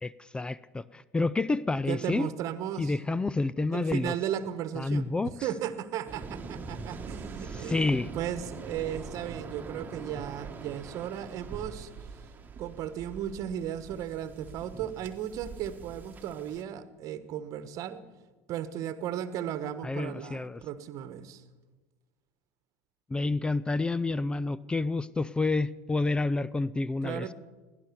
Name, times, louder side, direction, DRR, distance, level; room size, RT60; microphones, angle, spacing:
voice 1, 0.0-2.3 2.8-4.1 4.8-5.3 7.5-8.1 19.8-20.6 23.1-27.3, left 3 dB, 15° left, 18 dB, 0.4 m, -29 dB
voice 2, 1.9-3.0 3.7-5.1 5.4-11.9 12.6-18.0 18.5-21.4 27.0-27.3, right 10 dB, 50° right, 14 dB, 1.2 m, -35 dB
Waves surf, 6.1-16.6, right 4 dB, 25° right, 1.5 m, -43 dB
17.5 x 10.5 x 6.9 m, 1.3 s
hypercardioid pair, 85°, 7 cm